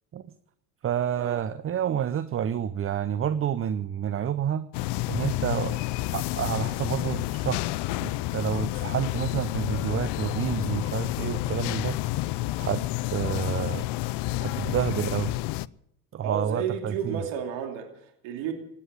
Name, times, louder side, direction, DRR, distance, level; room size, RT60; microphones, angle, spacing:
voice 1, 0.8-4.7 5.1-5.8 6.1-12.0 12.6-12.8 13.1-13.9 14.4-15.3 16.1-17.2, right 9 dB, 30° right, 15 dB, 0.6 m, -29 dB
sound 1, 4.7-15.7, left 18 dB, 60° left, 0.6 m, -30 dB
voice 2, 16.2-18.5, right 7 dB, 70° right, 4 dB, 2.8 m, -32 dB
17.0 x 10.0 x 8.2 m, 0.75 s
supercardioid pair, 85°, 48 cm